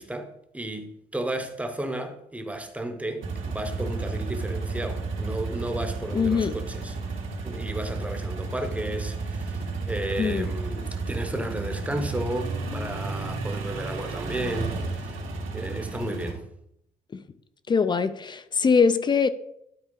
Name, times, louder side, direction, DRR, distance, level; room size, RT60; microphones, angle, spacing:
voice 1, 0.0-7.0 7.4-15.2 15.5-16.5, right 1 dB, 5° right, 0.7 m, -33 dB
sound 1, 3.2-16.3, right 3 dB, 85° right, 2.1 m, -32 dB
voice 2, 6.1-6.6 10.2-10.5 17.1-17.2 17.7-19.3, left 5 dB, 25° left, 0.3 m, -22 dB
12.0 x 4.4 x 3.7 m
cardioid pair, 155°, 20 cm